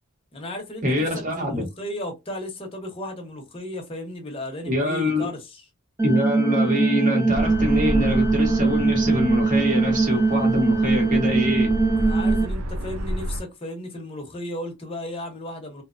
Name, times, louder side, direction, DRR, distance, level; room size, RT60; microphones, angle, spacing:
voice 1, 0.3-5.6 12.0-15.8, left 1 dB, 25° left, 0.7 m, -35 dB
voice 2, 0.8-1.7 4.7-5.3 6.0-11.7, left 1 dB, 35° right, 0.8 m, -25 dB
sound 1, 6.0-12.5, right 3 dB, 10° right, 0.3 m, -21 dB
sound 2, 7.3-13.4, equal, 75° right, 0.5 m, -30 dB
2.8 x 2.1 x 2.4 m
head